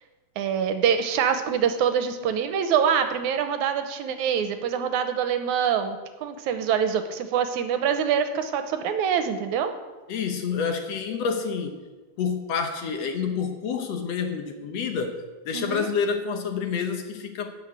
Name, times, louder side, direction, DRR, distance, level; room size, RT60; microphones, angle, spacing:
voice 1, 0.4-9.7 15.5-15.9, right 8 dB, 80° right, 8 dB, 2.3 m, -25 dB
voice 2, 10.1-11.8 12.2-17.5, left 6 dB, 65° left, 5 dB, 2.0 m, -28 dB
12.0 x 6.2 x 8.7 m, 1.3 s
omnidirectional pair, 3.5 m